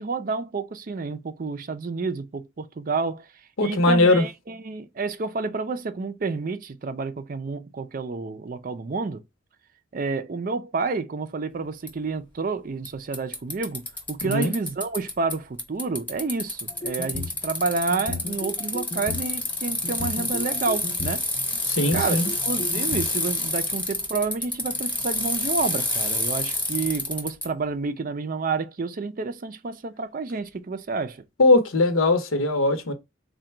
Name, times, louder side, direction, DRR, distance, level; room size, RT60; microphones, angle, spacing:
voice 1, 0.0-3.3 3.6-9.2 9.9-13.8 14.1-21.2 21.9-31.2, right 4 dB, 40° right, 0.4 m, -29 dB
voice 2, 3.6-4.2 14.2-14.5 21.7-22.3 31.4-32.9, left 2 dB, 85° left, 0.8 m, -20 dB
Bicycle, 11.9-12.0 12.9-13.0 13.1-15.3 15.6-27.5, left 1 dB, 10° left, 0.9 m, -28 dB
sound 1, 16.7-17.4 17.9-19.3 19.8-21.1 21.8-23.1, left 2 dB, 25° left, 0.4 m, -34 dB
3.8 x 2.2 x 4.4 m
head